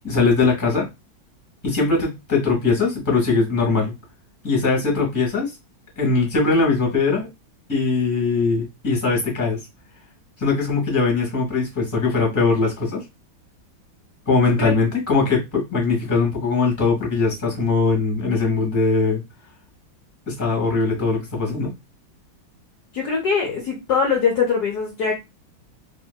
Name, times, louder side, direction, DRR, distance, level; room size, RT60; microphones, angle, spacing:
voice 1, 0.0-0.9 1.6-3.9 4.4-5.5 6.0-7.3 7.7-9.6 10.4-13.0 14.2-19.2 20.3-21.7, left 4 dB, 10° left, 1.0 m, -21 dB
voice 2, 22.9-25.1, left 5 dB, 65° left, 1.0 m, -22 dB
2.9 x 2.8 x 2.2 m
omnidirectional pair, 2.2 m